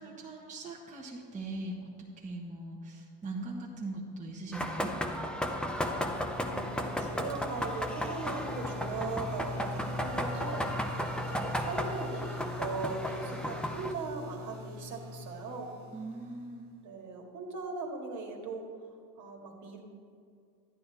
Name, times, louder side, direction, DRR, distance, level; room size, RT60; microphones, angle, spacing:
voice 1, 0.0-4.9 15.9-16.7, right 2 dB, 20° right, -3 dB, 1.4 m, -40 dB
sound 1, 4.5-13.9, equal, ahead, 0.6 m, -35 dB
sound 2, 5.1-16.7, left 2 dB, 90° right, 1.8 m, -43 dB
voice 2, 6.1-15.7 16.8-18.6 19.2-19.8, right 3 dB, 50° right, 1 dB, 1.9 m, -39 dB
11.5 x 9.6 x 4.1 m, 2.2 s
supercardioid pair, 115°, 38 cm